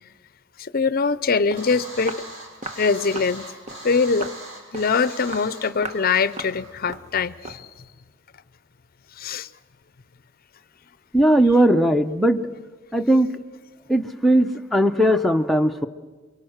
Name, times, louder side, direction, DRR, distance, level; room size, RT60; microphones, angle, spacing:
voice 1, 0.6-2.2 2.8-3.5 3.8-4.3 4.7-7.6 9.2-9.5, left 5 dB, 45° left, 15 dB, 0.7 m, -23 dB
Walk footsteps, 1.2-1.3 1.5-1.7 2.1-2.3 2.6-2.8 3.2-3.4 3.7-3.9 4.2-4.4 4.7-5.0 5.3-5.5 5.8-6.1 6.4-6.6 6.9-7.1 7.4-7.7, right 3 dB, 35° right, 1.3 m, -36 dB
sound 1, 1.6-7.0, right 1 dB, 90° right, 6.4 m, -40 dB
voice 2, 11.1-12.4 12.9-13.3 13.9-15.9, right 1 dB, ahead, 4 dB, 0.8 m, -18 dB
28.5 x 24.0 x 6.6 m, 1.4 s
head